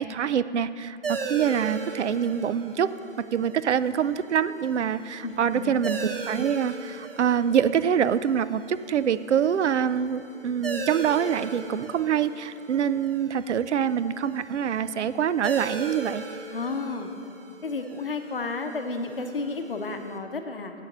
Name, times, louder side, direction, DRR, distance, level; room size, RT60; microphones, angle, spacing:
voice 1, 0.0-2.9 3.2-16.2, right 8 dB, 75° right, 15 dB, 0.5 m, -25 dB
sound 1, 1.0-20.2, right 4 dB, 55° right, 0.9 m, -39 dB
voice 2, 5.2-5.8 16.5-17.1 17.6-20.7, left 3 dB, 50° left, 6 dB, 0.8 m, -32 dB
8.3 x 6.7 x 6.0 m, 2.8 s
hypercardioid pair, 180°, 35 cm